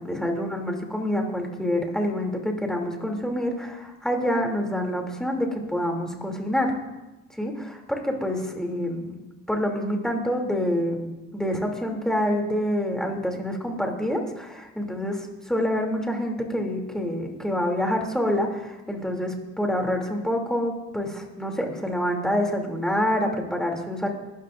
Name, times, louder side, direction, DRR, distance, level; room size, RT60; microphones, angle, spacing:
voice 1, 0.0-6.7 7.4-9.2 9.5-24.1, equal, ahead, 1 dB, 2.8 m, -27 dB
21.0 x 13.0 x 2.6 m, 1.0 s
cardioid pair, 90°, 30 cm